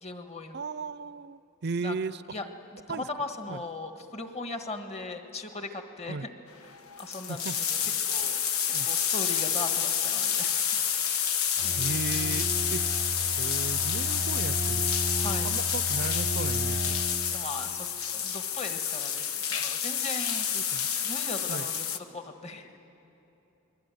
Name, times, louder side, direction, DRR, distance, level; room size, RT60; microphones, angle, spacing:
voice 1, 0.0-0.6 1.8-1.9 2.3-6.3 6.6-7.8 8.1-8.4 8.8-10.6 11.6-11.8 15.2-15.5 17.3-20.5 21.0-22.7, left 3 dB, 30° left, 6 dB, 1.6 m, -38 dB
voice 2, 0.5-2.2 2.9-3.0 3.5-3.6 6.1-6.3 7.3-7.6 7.8-8.0 8.7-8.9 11.8-12.8 13.4-14.9 15.4-17.0 20.5-20.9 21.5-21.7, right 4 dB, 50° right, 17 dB, 0.5 m, -36 dB
sound 1, 6.6-6.7 6.9-22.0, left 8 dB, 85° left, 1.2 m, -29 dB
Bowed string instrument, 11.6-17.2, right 1 dB, 60° left, 5.6 m, -34 dB
28.5 x 21.5 x 9.3 m, 2.9 s
head